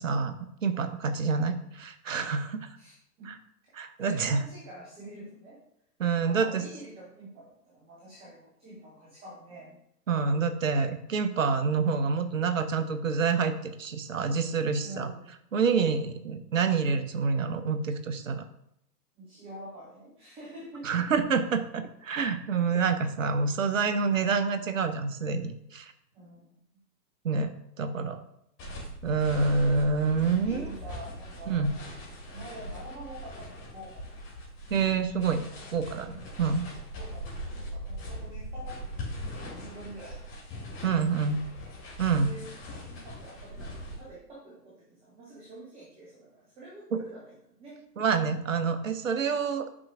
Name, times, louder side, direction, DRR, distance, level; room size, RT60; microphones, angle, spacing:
voice 1, 0.0-2.8 3.7-4.4 6.0-6.6 10.1-15.1 15.5-18.4 20.8-25.9 27.2-27.5 27.8-28.2 29.0-30.7 31.5-31.7 34.7-36.7 40.8-41.4 42.0-42.3 46.9-47.0 48.0-49.8, right 5 dB, 50° right, 9 dB, 0.8 m, -27 dB
voice 2, 2.8-3.3 4.0-5.6 6.2-9.8 14.8-15.3 15.7-16.0 19.2-21.1 26.1-26.6 30.4-31.7 32.3-34.1 36.1-36.5 36.9-39.2 39.5-40.2 40.8-41.1 42.2-42.6 42.9-48.1, right 1 dB, 10° right, -5 dB, 0.9 m, -46 dB
sound 1, 28.6-44.0, equal, 25° left, 2.6 m, -41 dB
8.6 x 5.8 x 2.5 m, 0.76 s
figure-of-eight pair, 120°, 50 cm